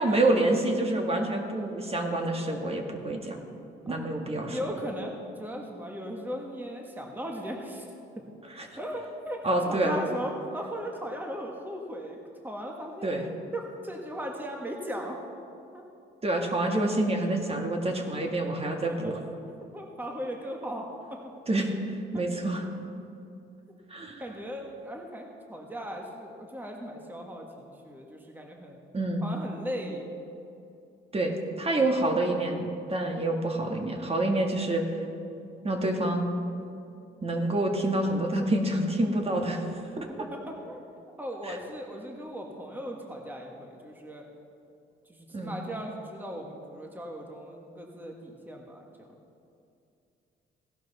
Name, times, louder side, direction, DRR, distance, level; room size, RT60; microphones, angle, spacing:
voice 1, 0.0-3.4 3.9-4.6 8.5-8.8 9.4-10.0 13.0-13.2 16.2-19.2 21.5-22.7 23.9-24.2 28.9-29.2 31.1-34.8 35.6-36.3 37.2-39.6 41.4-41.6 45.3-45.6, right 1 dB, 30° right, 2 dB, 1.7 m, -27 dB
voice 2, 3.9-4.2 4.5-7.9 8.8-12.2 12.4-13.1 13.5-15.2 15.7-15.8 19.7-21.2 24.2-28.8 29.2-30.1 40.0-40.8 41.2-44.3 45.1-49.2, equal, 10° right, 1 dB, 1.5 m, -37 dB
16.5 x 11.5 x 4.2 m, 2.6 s
cardioid pair, 90°, 20 cm